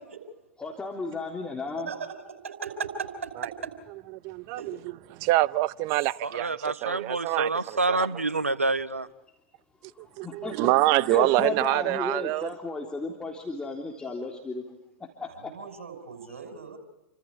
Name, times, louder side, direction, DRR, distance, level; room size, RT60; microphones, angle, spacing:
voice 1, 0.6-1.9 10.0-14.6 15.2-15.5 16.3-16.4, left 3 dB, 10° left, 3.5 m, -34 dB
voice 2, 1.9-3.3 4.6-4.7 15.3-16.8, right 5 dB, 75° right, 5.7 m, -37 dB
voice 3, 4.2-4.8 5.1-7.5 7.9-8.0 10.2-12.5, right 18 dB, 45° right, 0.7 m, -25 dB
voice 4, 6.2-9.1, right 3 dB, 90° right, 1.0 m, -27 dB
29.0 x 26.0 x 4.8 m
figure-of-eight pair, 95°, 7 cm